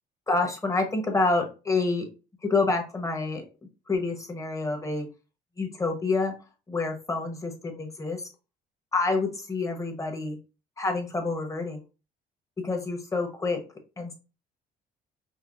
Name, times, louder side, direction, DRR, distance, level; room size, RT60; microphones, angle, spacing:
voice 1, 0.3-2.1 2.4-3.4 3.9-5.1 5.6-6.3 6.7-8.2 8.9-10.4 10.8-11.8 12.6-13.6 14.0-14.1, left 3 dB, 20° left, 4 dB, 1.0 m, -27 dB
5.5 x 2.1 x 2.5 m, 0.31 s
cardioid pair, 110°, 17 cm